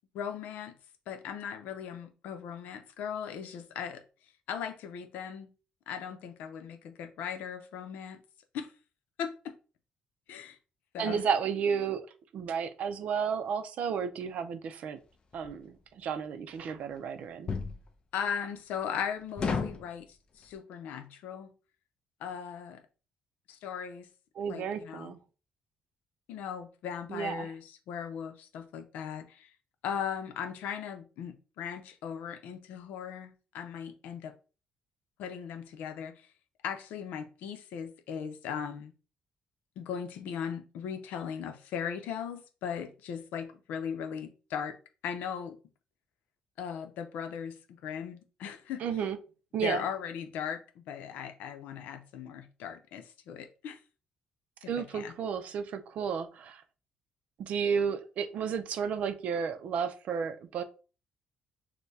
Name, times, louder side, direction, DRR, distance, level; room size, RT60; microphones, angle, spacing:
voice 1, 0.1-0.7 1.1-4.0 4.5-5.5 5.9-8.2 8.5-8.7 9.2-9.5 10.3-10.6 10.9-11.2 18.1-20.1 20.4-21.5 22.2-22.8 23.5-24.1 24.5-25.1 26.3-29.5 29.8-34.3 35.2-36.1 36.6-38.9 39.8-44.8 45.0-45.6 46.6-47.6 47.8-48.8 49.6-53.8 54.8-55.1, left 8 dB, 85° left, 0.6 m, -38 dB
voice 2, 11.0-12.0 12.3-15.0 15.3-17.5 24.4-25.2 27.1-27.5 48.8-49.2 49.5-49.8 54.7-56.6 57.4-60.6, right 7 dB, 55° right, 0.5 m, -32 dB
sound 1, 15.3-15.5 17.5-17.8 19.4-19.8, left 5 dB, 35° left, 0.5 m, -31 dB
6.4 x 2.2 x 2.7 m
cardioid pair, 160°, 3 cm